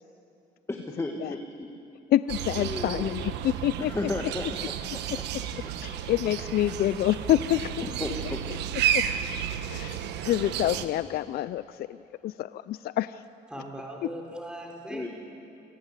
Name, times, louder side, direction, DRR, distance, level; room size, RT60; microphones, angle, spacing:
voice 1, 0.7-1.7 2.5-3.2 3.8-4.7 7.8-8.4 14.9-15.1, left 2 dB, 15° left, 2 dB, 2.1 m, -34 dB
voice 2, 2.1-3.9 5.8-7.7 8.9-9.0 9.7-10.0 10.2-12.0 12.2-13.2, left 13 dB, 60° left, 15 dB, 0.5 m, -27 dB
sound 1, 2.3-10.9, right 9 dB, 80° right, 1.3 m, -32 dB
voice 3, 13.5-15.1, right 1 dB, 5° right, 0 dB, 4.3 m, -39 dB
28.0 x 19.5 x 8.2 m, 2.7 s
cardioid pair, 95°, 18 cm